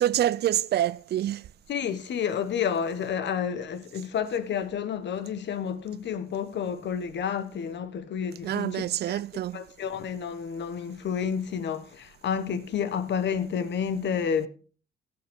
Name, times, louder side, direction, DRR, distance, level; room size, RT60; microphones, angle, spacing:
voice 1, 0.0-1.5 8.4-9.6, right 12 dB, 55° right, 0.5 m, -26 dB
voice 2, 1.7-8.8 9.1-9.2 9.5-14.5, left 7 dB, 65° left, 1.1 m, -30 dB
15.5 x 8.8 x 3.6 m
cardioid pair, 90°, 20 cm